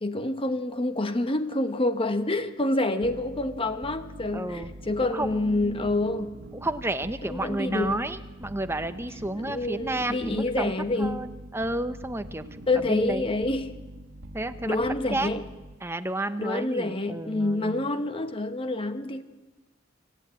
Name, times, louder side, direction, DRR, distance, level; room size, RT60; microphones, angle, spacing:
voice 1, 0.0-6.4 7.2-8.1 9.4-11.2 12.7-13.7 14.6-15.4 16.4-19.2, left 2 dB, 30° left, 1.0 m, -27 dB
sound 1, 3.0-15.9, right 1 dB, 80° right, 1.7 m, -44 dB
voice 2, 4.3-4.7 5.1-5.9 6.6-10.7 11.0-12.4 12.9-13.3 14.3-15.3 15.8-17.9, right 1 dB, 15° right, 0.9 m, -31 dB
26.0 x 14.0 x 8.9 m
head